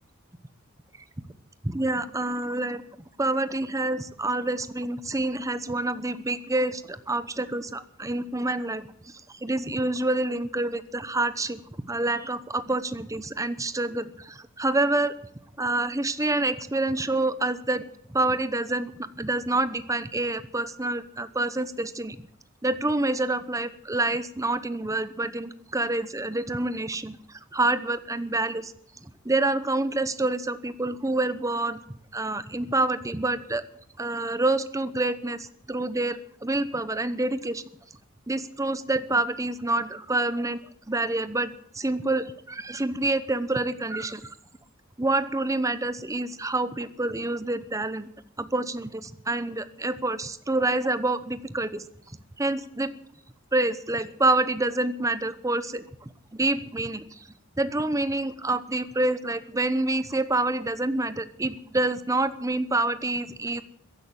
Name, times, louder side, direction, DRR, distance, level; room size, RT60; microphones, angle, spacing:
voice 1, 1.6-2.8 3.2-8.9 9.4-11.6 11.9-15.1 15.6-17.8 18.1-22.2 22.6-27.2 27.5-28.7 29.0-31.8 32.1-33.6 34.0-37.6 38.3-40.6 40.9-41.5 41.7-44.2 45.0-48.1 48.4-51.8 52.4-52.9 53.5-55.8 56.3-57.0 57.6-63.6, right 2 dB, 15° right, 13 dB, 0.9 m, -27 dB
15.5 x 11.0 x 7.5 m, 0.69 s
head